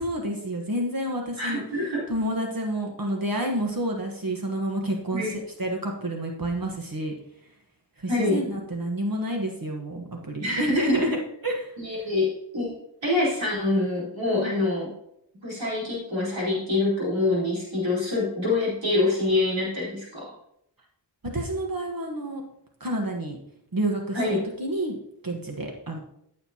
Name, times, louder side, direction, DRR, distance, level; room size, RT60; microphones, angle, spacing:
voice 1, 0.0-1.6 2.1-7.1 8.0-12.1 14.3-14.5 21.3-22.4 22.8-23.4 23.7-24.2 24.6-25.0 25.2-26.0, right 1 dB, 50° right, 1 dB, 1.3 m, -29 dB
voice 2, 1.4-2.1 5.1-5.4 8.1-8.4 10.4-11.0 11.8-14.9 15.4-20.3 24.1-24.4, left 2 dB, 85° right, -6 dB, 4.0 m, -26 dB
14.0 x 6.7 x 2.9 m, 0.76 s
wide cardioid pair, 65°, 44 cm